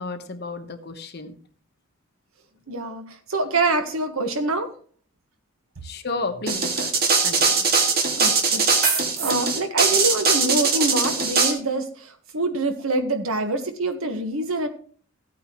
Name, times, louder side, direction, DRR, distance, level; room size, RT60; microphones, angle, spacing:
voice 1, 0.0-1.4 2.9-3.0 5.8-6.9 7.2-7.7 7.9-8.0, left 3 dB, 50° left, 7 dB, 1.1 m, -32 dB
voice 2, 2.7-4.7 8.2-14.7, right 2 dB, 80° right, 7 dB, 1.5 m, -26 dB
sound 1, 6.5-11.5, right 4 dB, 45° right, 1.9 m, -20 dB
15.0 x 8.6 x 3.1 m, 0.43 s
head